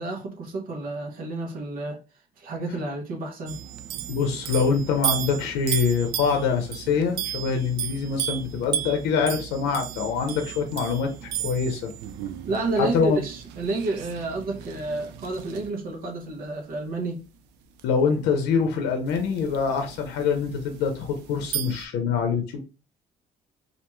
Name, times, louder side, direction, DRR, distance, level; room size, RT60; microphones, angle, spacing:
voice 1, 0.0-2.0 2.4-3.6 12.5-17.2, right 2 dB, 60° right, 0.7 m, -30 dB
sound 1, 3.5-15.7 17.8-17.9 19.1-21.9, right 10 dB, 90° right, 0.4 m, -34 dB
voice 2, 4.1-11.9 12.8-13.2 17.8-22.6, left 5 dB, 85° left, 0.6 m, -25 dB
2.5 x 2.2 x 2.9 m
cardioid pair, 110°, 17 cm